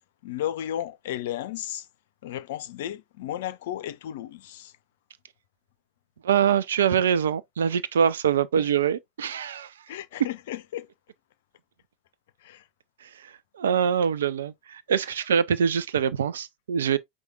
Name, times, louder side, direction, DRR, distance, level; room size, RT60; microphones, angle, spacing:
voice 1, 0.2-1.9 2.2-4.7 8.6-8.7 9.9-10.9 12.4-12.6, left 12 dB, 60° left, 0.5 m, -34 dB
voice 2, 6.2-9.7 13.0-17.0, right 8 dB, 70° right, 0.4 m, -24 dB
4.9 x 2.3 x 4.6 m
figure-of-eight pair, 85°, 0 cm